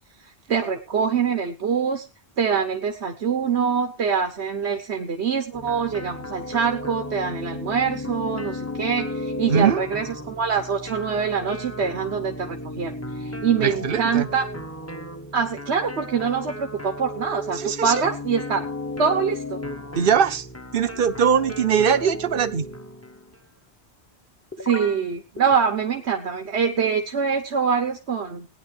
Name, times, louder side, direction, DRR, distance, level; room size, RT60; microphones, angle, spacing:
voice 1, 0.5-2.1 2.4-14.5 15.3-18.6 19.0-19.6 24.6-28.5, right 6 dB, 75° right, 6 dB, 1.4 m, -24 dB
sound 1, 5.5-23.4 24.5-25.0 25.4-25.5, left 1 dB, 15° left, 1.3 m, -35 dB
voice 2, 9.5-9.8 13.6-14.3 17.5-18.0 19.9-20.5 20.7-22.7, right 7 dB, 55° right, 12 dB, 1.1 m, -21 dB
18.5 x 10.0 x 3.3 m, 0.29 s
omnidirectional pair, 1.1 m